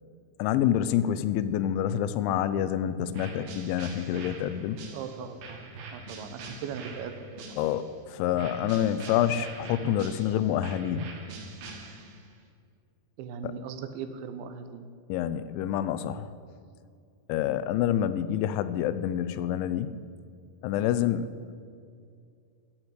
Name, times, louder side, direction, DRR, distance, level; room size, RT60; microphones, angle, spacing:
voice 1, 0.4-4.8 7.6-11.1 15.1-16.3 17.3-19.9 20.6-21.5, left 10 dB, 90° left, 13 dB, 3.0 m, -27 dB
sound 1, 3.1-7.9 8.4-12.3, right 3 dB, 65° right, 3.2 m, -44 dB
voice 2, 4.9-7.3 13.2-14.9, right 7 dB, 85° right, 9 dB, 3.2 m, -39 dB
12.0 x 8.9 x 8.2 m, 2.3 s
omnidirectional pair, 5.2 m